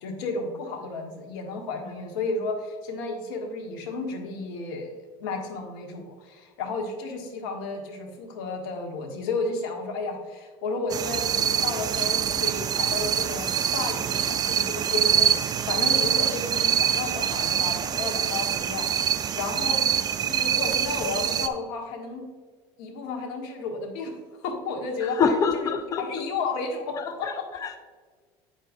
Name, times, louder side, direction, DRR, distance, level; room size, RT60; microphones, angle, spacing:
voice 1, 0.0-4.9 5.2-19.9 20.2-22.3 22.8-24.1 24.4-25.7 26.0-27.4, left 3 dB, 85° left, 3 dB, 1.5 m, -32 dB
sound 1, 10.9-21.5, right 8 dB, 35° right, 0.4 m, -25 dB
voice 2, 25.0-26.0 26.9-27.8, left 6 dB, 30° left, 8 dB, 0.5 m, -26 dB
8.4 x 6.5 x 2.7 m, 1.5 s
supercardioid pair, 115°, 12 cm